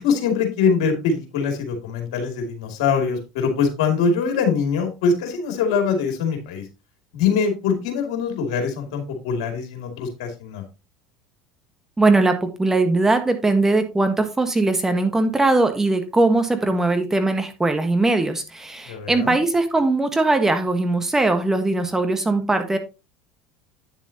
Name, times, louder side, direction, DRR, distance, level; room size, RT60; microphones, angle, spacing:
voice 1, 0.0-6.6 7.1-10.6 18.8-19.4, left 5 dB, 75° left, 4 dB, 2.5 m, -23 dB
voice 2, 12.0-22.8, right 2 dB, 15° right, 7 dB, 1.4 m, -20 dB
9.1 x 7.3 x 2.9 m, 0.28 s
hypercardioid pair, 75°, 3 cm